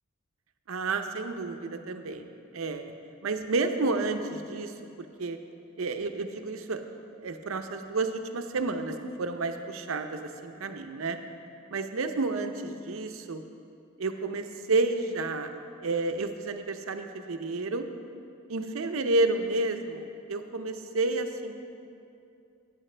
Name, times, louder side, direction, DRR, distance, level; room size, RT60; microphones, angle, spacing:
voice 1, 0.7-2.3 2.5-2.9 3.2-4.7 5.2-5.4 5.8-6.8 7.2-11.2 11.7-13.4 14.0-15.5 15.8-17.9 18.5-21.5, right 3 dB, 75° right, 7 dB, 0.6 m, -30 dB
13.0 x 9.1 x 3.3 m, 2.6 s
head